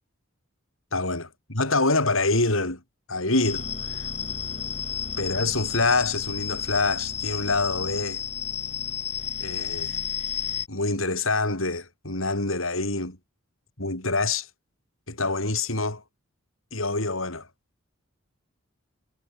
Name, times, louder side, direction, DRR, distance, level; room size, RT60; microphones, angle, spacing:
voice 1, 0.9-2.8 3.1-3.7 5.2-8.2 9.4-10.0 10.7-13.2 13.8-14.5 15.1-16.0 16.7-17.5, left 3 dB, 85° left, 7.2 m, -26 dB
sound 1, 3.4-10.7, left 8 dB, 35° left, 4.4 m, -32 dB
head